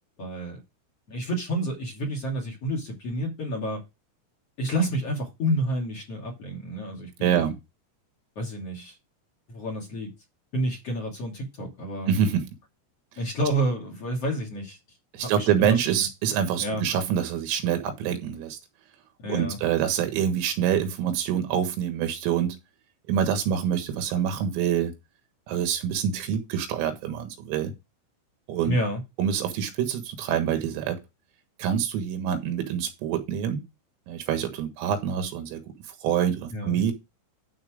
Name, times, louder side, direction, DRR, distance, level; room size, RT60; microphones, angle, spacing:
voice 1, 0.2-0.6 1.1-3.8 4.6-7.5 8.3-9.0 9.5-10.1 10.5-12.1 13.2-14.8 15.2-16.1 16.6-16.8 19.2-19.6 28.6-29.0 36.5-36.8, right 1 dB, 40° left, 2.7 m, -29 dB
voice 2, 7.2-7.6 12.1-12.4 15.1-18.6 19.3-22.6 23.1-24.9 25.5-27.7 28.5-28.8 29.2-31.0 31.6-33.6 34.1-35.6 36.0-36.9, right 9 dB, 85° right, 4.2 m, -26 dB
12.0 x 4.5 x 5.0 m
omnidirectional pair, 5.9 m